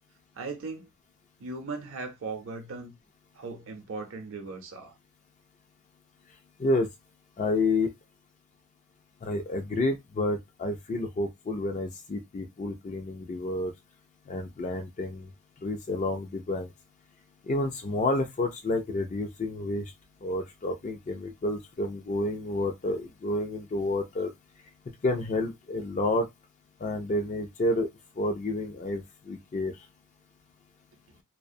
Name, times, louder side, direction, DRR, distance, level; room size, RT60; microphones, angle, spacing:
voice 1, 0.3-0.9 1.4-3.0 3.3-5.0, right 3 dB, 65° right, 0.6 m, -38 dB
voice 2, 7.4-7.9 9.2-13.7 14.3-15.3 15.6-16.7 17.4-19.9 20.2-24.3 25.0-26.3 26.8-27.9 28.2-29.8, left 2 dB, 35° left, 0.4 m, -29 dB
2.4 x 2.1 x 2.6 m
head